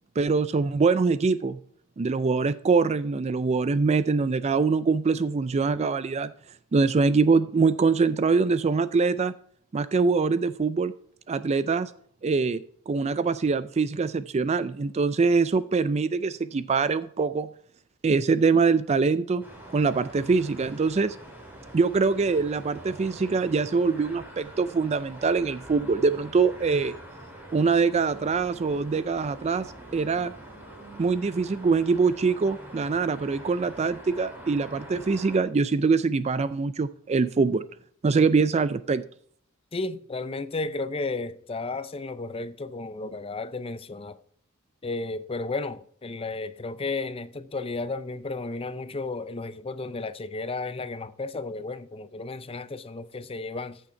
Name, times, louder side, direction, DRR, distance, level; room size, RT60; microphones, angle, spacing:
voice 1, 0.2-1.6 2.0-6.3 6.7-9.3 9.7-10.9 11.3-11.9 12.2-17.5 18.0-19.4 19.7-21.2 21.7-26.9 27.5-29.6 29.9-30.3 31.0-37.6 38.0-39.0, right 4 dB, 30° right, 0.4 m, -24 dB
sound 1, 19.4-35.4, right 1 dB, 10° right, 4.0 m, -45 dB
voice 2, 39.7-44.2 44.8-53.8, left 3 dB, 25° left, 0.5 m, -33 dB
14.5 x 6.4 x 4.4 m
head